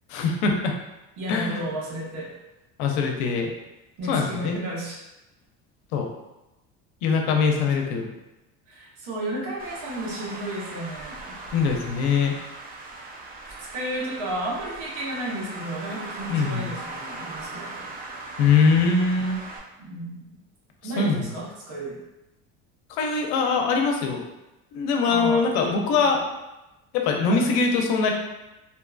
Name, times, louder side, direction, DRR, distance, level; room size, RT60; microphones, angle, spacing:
voice 1, 0.1-0.7 1.3-1.6 2.8-3.5 4.1-4.6 5.9-6.1 7.0-8.1 11.5-12.4 16.3-16.7 18.4-19.4 21.0-21.3 22.9-24.2 24.7-26.2 26.9-28.1, left 4 dB, 85° left, 2 dB, 0.6 m, -22 dB
voice 2, 1.2-2.3 4.0-5.0 7.9-8.0 8.7-11.2 13.6-17.8 19.8-20.2 20.8-22.0 25.0-25.7 26.0-26.1 27.3-27.5, right 1 dB, 70° right, -4 dB, 1.0 m, -33 dB
Traffic noise roadway noise, 9.6-19.6, right 3 dB, 30° right, 0.4 m, -39 dB
2.7 x 2.3 x 2.3 m, 0.98 s
supercardioid pair, 110°, 33 cm